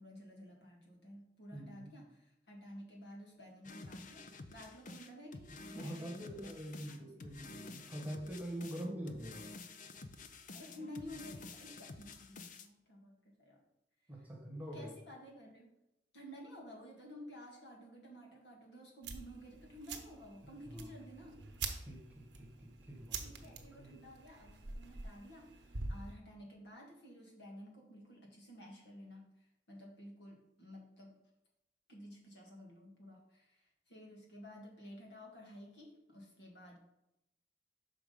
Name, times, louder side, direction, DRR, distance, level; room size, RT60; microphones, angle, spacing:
voice 1, 0.0-7.2 10.5-13.6 14.2-14.3 14.7-15.7 16.1-21.5 23.2-31.2 31.9-36.8, equal, 70° left, -1 dB, 1.9 m, -53 dB
voice 2, 1.5-1.9 5.8-9.4 14.1-14.9 20.4-20.9 21.9-24.0, equal, 10° right, 0 dB, 1.3 m, -45 dB
sound 1, 3.6-12.7, left 3 dB, 45° left, 0.5 m, -50 dB
sound 2, 19.0-26.1, right 4 dB, 80° right, 0.9 m, -46 dB
6.0 x 4.9 x 5.2 m, 0.87 s
head